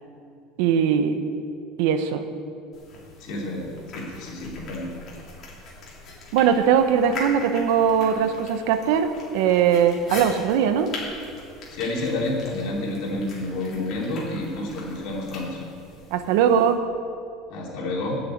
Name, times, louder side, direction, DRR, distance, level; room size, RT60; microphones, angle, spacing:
voice 1, 0.6-1.2 1.8-2.3 6.3-10.9 16.1-16.8, right 8 dB, 70° right, 9 dB, 1.0 m, -20 dB
sound 1, 2.7-16.7, left 3 dB, 35° left, 3.4 m, -41 dB
voice 2, 3.2-5.0 11.7-15.6 17.5-18.2, left 2 dB, 55° left, -3 dB, 3.5 m, -29 dB
13.0 x 6.9 x 8.7 m, 2.4 s
cardioid pair, 165°, 0 cm